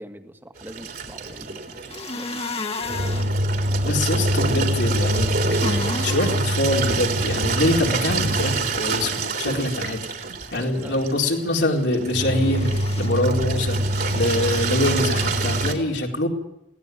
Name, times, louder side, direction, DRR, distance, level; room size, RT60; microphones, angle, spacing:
voice 1, 0.0-2.7 10.5-11.1, equal, 10° right, 6 dB, 1.9 m, -42 dB
Engine, 0.6-15.7, right 2 dB, 55° right, 3.7 m, -24 dB
sound 1, 1.9-3.3 5.1-6.5 12.4-13.1 13.9-14.9, left 3 dB, 35° left, 1.8 m, -33 dB
voice 2, 3.8-10.0 10.5-16.3, left 1 dB, 80° left, 1 dB, 4.2 m, -24 dB
23.0 x 18.5 x 9.4 m, 0.85 s
head